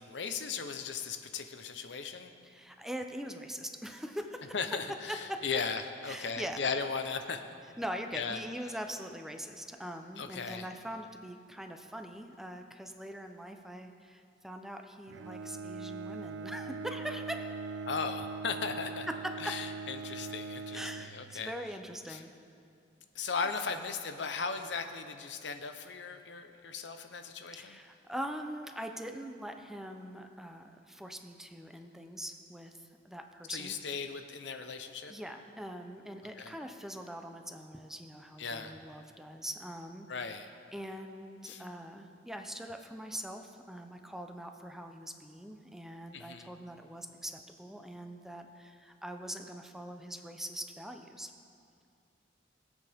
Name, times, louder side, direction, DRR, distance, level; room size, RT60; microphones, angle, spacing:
voice 1, 0.0-2.3 4.5-7.4 8.1-8.4 10.2-10.7 17.8-19.1 19.4-21.5 22.1-22.2 23.1-27.8 33.5-35.1 36.4-36.5 38.4-38.7 40.1-40.5 41.4-41.6 46.1-46.5, left 5 dB, 80° left, 8 dB, 0.7 m, -37 dB
voice 2, 2.4-4.5 5.1-5.4 6.0-6.6 7.8-17.5 20.7-22.3 23.7-23.9 27.5-33.8 35.1-51.3, equal, ahead, 5 dB, 0.6 m, -43 dB
Bowed string instrument, 15.1-21.8, right 4 dB, 80° right, 0.3 m, -41 dB
21.0 x 8.2 x 3.5 m, 2.4 s
head